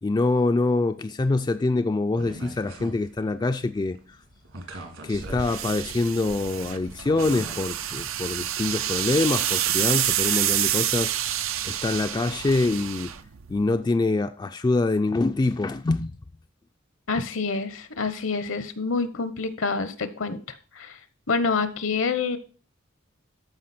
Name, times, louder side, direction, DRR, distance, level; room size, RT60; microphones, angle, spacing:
voice 1, 0.0-4.2 5.0-11.1 11.7-13.1 13.5-16.1, left 3 dB, 20° left, 0.3 m, -25 dB
sound 1, 2.2-10.7, right 1 dB, 70° right, 2.0 m, -45 dB
sound 2, 5.1-13.8, right 12 dB, 90° right, 0.6 m, -28 dB
voice 2, 17.1-21.0 21.3-22.4, left 4 dB, 70° left, 0.9 m, -27 dB
13.5 x 4.9 x 4.2 m
head